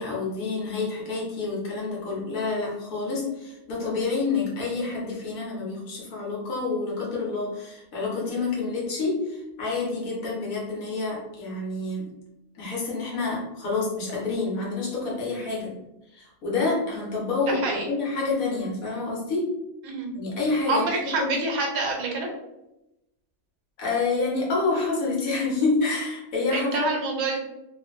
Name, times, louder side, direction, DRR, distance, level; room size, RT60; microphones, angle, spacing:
voice 1, 0.0-12.1 12.5-15.7 16.1-19.5 20.1-21.3 23.8-27.0, left 3 dB, 70° left, -4 dB, 1.3 m, -28 dB
voice 2, 17.5-17.8 19.8-20.1 20.7-22.3 26.5-27.4, right 3 dB, 80° right, 1 dB, 1.1 m, -27 dB
2.7 x 2.5 x 2.4 m, 0.93 s
omnidirectional pair, 1.5 m